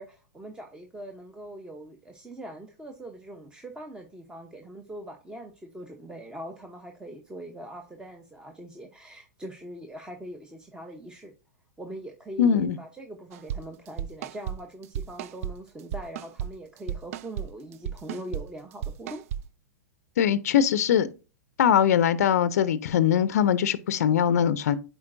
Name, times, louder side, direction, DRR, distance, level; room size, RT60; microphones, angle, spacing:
voice 1, 0.0-11.3 11.8-19.2, right 1 dB, 10° right, 0.8 m, -42 dB
voice 2, 12.4-12.8 20.2-21.1 21.6-24.8, left 9 dB, 65° left, 0.5 m, -22 dB
sound 1, 13.3-13.6 13.9-14.6 14.8-15.5 15.9-16.5 16.8-17.5 17.7-18.4 18.8-19.4, right 10 dB, 55° right, 0.4 m, -33 dB
8.5 x 4.5 x 2.6 m
hypercardioid pair, 110°, 9 cm